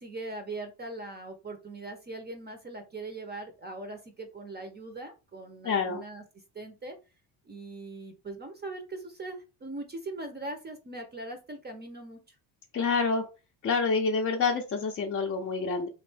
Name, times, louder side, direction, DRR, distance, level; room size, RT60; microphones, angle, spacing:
voice 1, 0.0-6.2 6.5-7.0 7.5-12.4, right 2 dB, 20° right, 6 dB, 0.6 m, -40 dB
voice 2, 5.6-6.0 12.7-13.3 13.6-15.9, left 4 dB, 30° left, -1 dB, 0.5 m, -27 dB
3.1 x 2.5 x 3.2 m, 0.30 s
supercardioid pair, 95°, 47 cm